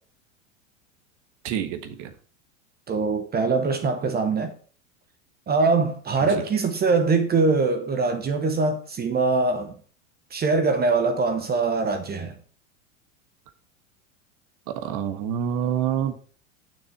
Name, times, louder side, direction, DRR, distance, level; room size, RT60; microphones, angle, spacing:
voice 1, 1.4-2.1 14.8-16.2, right 9 dB, 50° right, 1.4 m, -27 dB
voice 2, 2.9-4.5 5.5-9.7 10.3-12.3, right 4 dB, 25° right, 1.0 m, -23 dB
7.1 x 6.2 x 5.7 m
hypercardioid pair, 95°, 39 cm